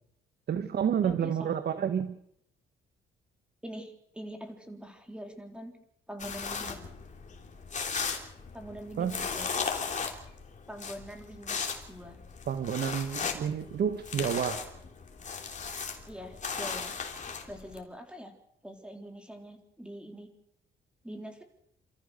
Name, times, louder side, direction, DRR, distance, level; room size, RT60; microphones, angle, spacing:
voice 1, 0.5-2.2 9.0-9.1 12.5-14.6, right 8 dB, 55° right, 11 dB, 1.2 m, -29 dB
voice 2, 1.0-1.5 3.6-5.8 6.1-6.8 8.5-9.5 10.7-11.6 11.9-12.2 16.1-16.9 17.5-18.3 18.6-20.3 21.0-21.4, equal, 5° right, 4 dB, 3.8 m, -43 dB
sound 1, 6.2-17.8, left 5 dB, 40° left, 3.3 m, -37 dB
28.0 x 14.0 x 6.5 m, 0.75 s
cardioid pair, 90°, 20 cm